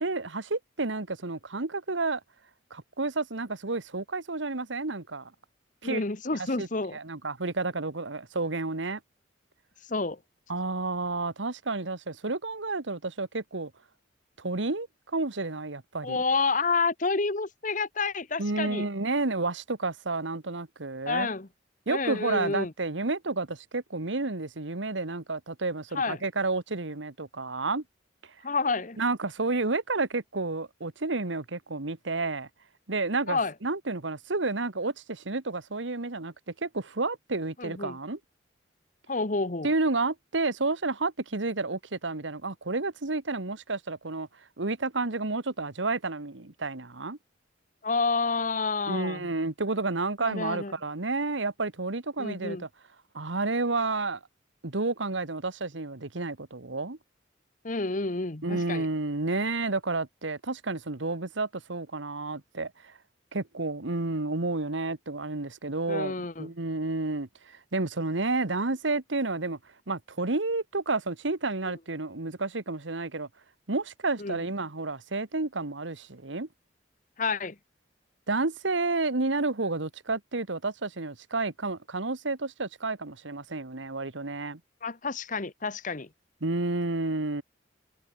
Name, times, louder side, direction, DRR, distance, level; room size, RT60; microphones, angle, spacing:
voice 1, 0.0-2.2 2.7-5.3 5.8-6.0 6.4-9.0 10.5-13.7 14.4-14.9 15.1-16.2 18.4-21.3 21.9-27.8 29.0-32.5 32.9-38.2 39.6-44.3 44.6-47.2 48.9-52.7 53.1-54.2 54.6-57.0 58.4-62.9 63.3-69.6 69.9-73.3 73.7-76.5 78.3-84.6 86.4-87.4, right 3 dB, 80° right, 1.6 m, -30 dB
voice 2, 5.8-7.0 9.9-10.2 16.0-18.8 21.1-21.5 21.9-22.7 25.9-26.2 28.4-29.0 33.3-33.5 37.6-38.0 39.1-39.7 47.8-49.3 50.2-50.7 52.2-52.6 57.6-58.9 65.9-66.5 74.2-74.4 77.2-77.5 84.8-86.1, left 3 dB, 45° left, 1.2 m, -29 dB
head